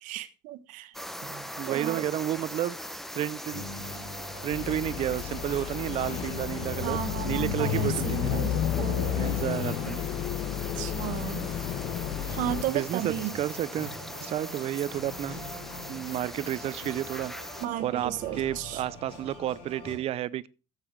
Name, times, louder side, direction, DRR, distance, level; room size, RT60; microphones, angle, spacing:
voice 1, 0.0-0.9 1.6-2.1 6.8-9.2 10.8-11.5 12.3-13.3 17.6-18.8, right 13 dB, 75° right, 1.3 m, -34 dB
sound 1, 0.9-17.7, equal, ahead, 0.9 m, -41 dB
voice 2, 1.2-3.6 4.4-8.4 8.8-8.9 9.2-10.0 12.7-13.9 14.2-15.4 15.9-17.3 17.8-20.5, right 12 dB, 50° right, 0.7 m, -31 dB
sound 2, 3.5-20.0, left 2 dB, 40° left, 6.9 m, -43 dB
sound 3, 4.5-12.6, left 11 dB, 55° left, 1.0 m, -31 dB
14.0 x 8.4 x 4.7 m
cardioid pair, 135°, 13 cm